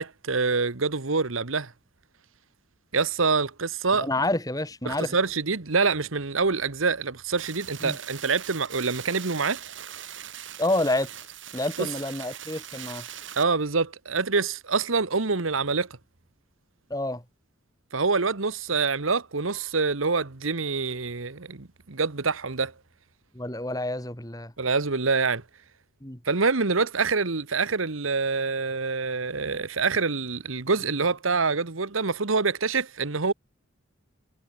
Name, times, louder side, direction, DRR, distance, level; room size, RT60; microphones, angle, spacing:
voice 1, 0.0-1.7 2.9-4.1 4.9-9.6 11.8-11.9 13.3-15.9 17.9-22.7 24.6-25.4 26.2-33.3, right 4 dB, 90° right, 1.4 m, -26 dB
voice 2, 4.0-5.2 7.8-8.0 10.6-11.1 11.5-13.1 16.9-17.2 23.3-24.5 26.0-26.2, left 1 dB, 20° left, 3.6 m, -28 dB
sound 1, 7.4-13.4, right 10 dB, 70° right, 6.1 m, -41 dB
head